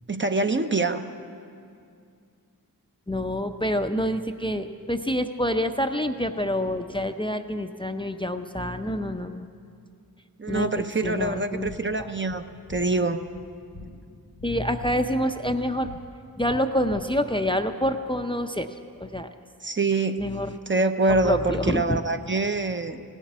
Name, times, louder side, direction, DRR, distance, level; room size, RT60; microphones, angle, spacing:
voice 1, 0.1-1.0 10.4-12.4 12.7-13.2 19.6-20.2 20.7-23.0, right 3 dB, 30° right, 7 dB, 0.7 m, -25 dB
voice 2, 3.1-9.5 10.5-11.7 12.0-12.1 14.4-15.9 16.4-18.7 19.0-19.3 20.2-20.6 21.1-22.0, equal, 15° left, 7 dB, 0.5 m, -27 dB
sound 1, 11.2-17.5, left 1 dB, 90° left, 1.1 m, -46 dB
16.0 x 7.3 x 9.3 m, 2.3 s
cardioid pair, 45°, 37 cm